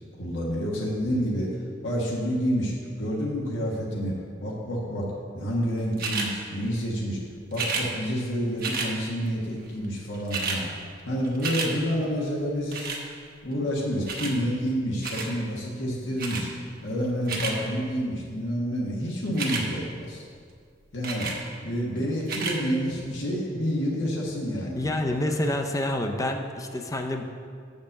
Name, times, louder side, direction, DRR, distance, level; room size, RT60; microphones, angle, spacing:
voice 1, 0.2-1.5 1.8-4.1 4.4-5.1 5.3-7.2 7.5-10.7 11.0-12.9 13.4-16.5 16.8-20.2 20.9-21.3 21.6-25.2, equal, 85° left, -4 dB, 1.4 m, -28 dB
sound 1, 6.0-6.3 7.5-7.9 8.6-8.9 9.8-9.9 10.1-10.6 11.0-11.7 12.7-13.0 14.1-14.4 15.0-15.3 16.2-16.4 17.0-17.6 19.3-19.6 21.0-21.4 22.2-22.6 23.2-23.3, right 4 dB, 50° right, 1.0 m, -30 dB
voice 2, 24.7-27.2, left 1 dB, 20° left, 4 dB, 0.5 m, -28 dB
6.6 x 5.3 x 7.1 m, 2.1 s
head